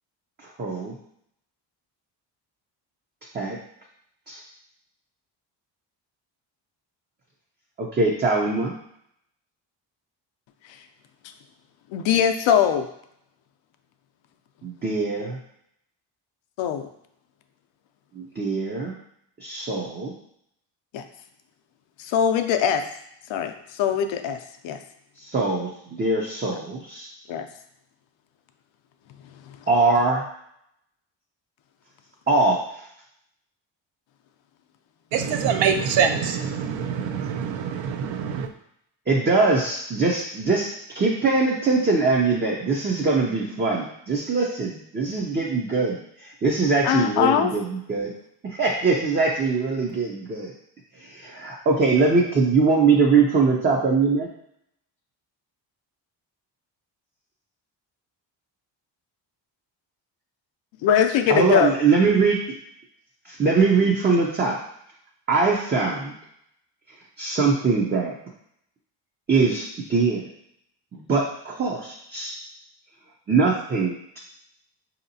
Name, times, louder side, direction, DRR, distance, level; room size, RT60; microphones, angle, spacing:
voice 1, 0.4-1.0 3.3-3.6 4.3-4.4 7.8-8.7 14.6-15.4 18.1-19.0 19.4-20.1 25.2-27.1 29.7-30.2 32.3-32.9 39.1-48.1 48.4-50.5 50.9-54.3 61.3-62.4 63.2-64.6 65.3-66.1 67.2-68.1 69.3-70.2 70.9-72.4 73.3-74.2, right 4 dB, 25° right, -2 dB, 0.5 m, -22 dB
voice 2, 11.9-12.9 16.6-16.9 20.9-21.0 22.0-22.8 23.3-24.4 24.6-24.8 27.3-27.5 29.5-29.6 46.8-47.5 60.8-61.7, left 8 dB, 80° left, 7 dB, 0.6 m, -21 dB
voice 3, 35.1-38.5, right 7 dB, 80° right, 6 dB, 0.6 m, -24 dB
4.9 x 2.8 x 2.7 m, 0.74 s
cardioid pair, 110°, 45 cm